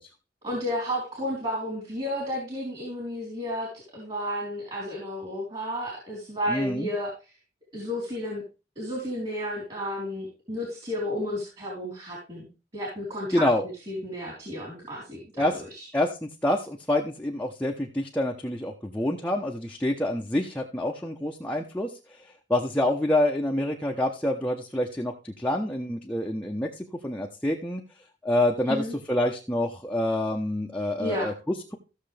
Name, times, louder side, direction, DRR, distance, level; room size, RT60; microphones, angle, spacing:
voice 1, 0.4-7.1 7.7-8.4 8.8-12.5 12.7-13.4 13.9-15.9 28.7-28.9 31.0-31.3, equal, 30° right, -3 dB, 3.9 m, -32 dB
voice 2, 6.5-6.9 13.3-13.7 15.4-15.6 15.9-27.8 28.2-31.8, left 1 dB, 10° left, 0 dB, 0.9 m, -27 dB
15.5 x 6.7 x 3.4 m, 0.31 s
head